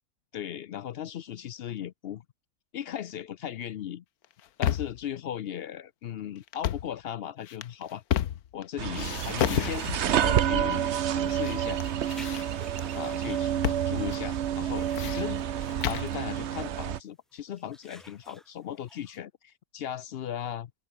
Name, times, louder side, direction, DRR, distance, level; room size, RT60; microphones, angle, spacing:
voice 1, 0.3-2.2 2.7-4.0 4.6-8.0 8.5-11.8 12.9-20.7, left 10 dB, 65° left, 0.6 m, -37 dB
sound 1, 4.2-5.0 6.5-6.9 7.5-8.6 8.9-10.2 11.0-11.5 11.8-12.8 13.6-13.9 14.1-14.2 14.7-16.1, left 11 dB, 85° left, 1.4 m, -31 dB
sound 2, 8.8-17.0, right 10 dB, 55° right, 1.0 m, -29 dB
sound 3, 12.2-14.1 14.5-14.7 15.1-15.2 15.6-16.0 16.9-17.0 17.3-19.2, equal, ahead, 3.9 m, -53 dB
open air
omnidirectional pair, 1.6 m